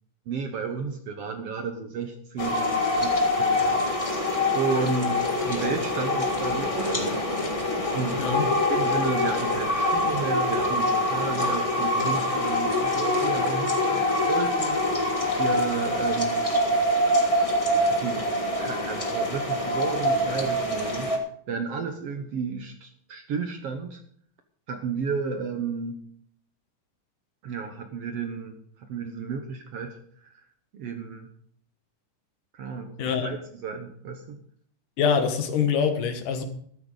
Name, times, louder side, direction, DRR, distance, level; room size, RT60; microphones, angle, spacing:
voice 1, 0.3-3.8 4.5-7.2 7.9-8.2 8.7-14.8 15.4-16.4 17.8-18.3 18.6-21.1 21.5-24.0 24.7-26.0 27.4-30.0 30.2-30.3 30.7-31.3 32.5-34.4, right 5 dB, 60° right, 6 dB, 1.7 m, -32 dB
sound 1, 2.4-21.2, left 1 dB, 20° left, 0.9 m, -25 dB
voice 2, 33.0-33.3 35.0-36.4, left 6 dB, 75° left, 6 dB, 2.9 m, -24 dB
13.5 x 13.0 x 3.9 m, 0.62 s
omnidirectional pair, 3.7 m